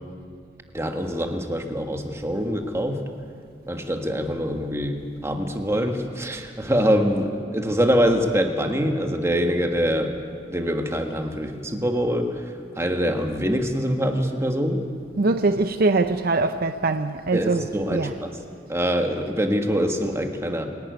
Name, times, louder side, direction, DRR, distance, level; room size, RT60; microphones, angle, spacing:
voice 1, 0.7-3.0 3.7-10.1 10.5-12.3 12.8-14.8 17.3-18.4 18.7-20.7, equal, 15° right, 1.5 m, -24 dB
voice 2, 15.2-18.1, right 3 dB, 55° right, 0.6 m, -22 dB
27.0 x 11.5 x 9.3 m
head